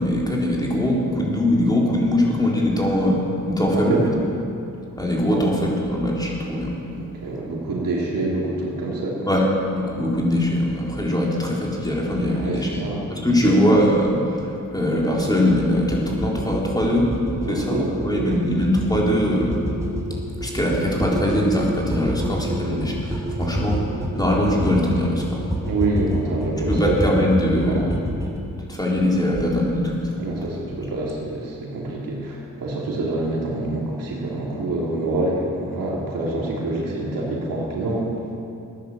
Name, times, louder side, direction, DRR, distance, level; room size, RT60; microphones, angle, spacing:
voice 1, 0.0-3.2 3.5-4.0 5.0-6.8 9.3-9.5 9.7-12.8 13.1-17.1 17.5-19.6 20.4-25.4 26.7-28.0 28.2-28.3 28.7-30.1, left 1 dB, 10° left, -3 dB, 3.8 m, -21 dB
voice 2, 3.7-4.1 5.3-5.4 7.0-9.3 12.3-13.0 13.4-13.5 17.4-18.4 25.6-26.9 27.6-27.8 30.2-38.1, right 2 dB, 90° right, -3 dB, 2.9 m, -26 dB
sound 1, 15.9-28.4, right 1 dB, 10° right, 2.3 m, -28 dB
14.5 x 10.0 x 7.3 m, 2.7 s
cardioid pair, 65°, 33 cm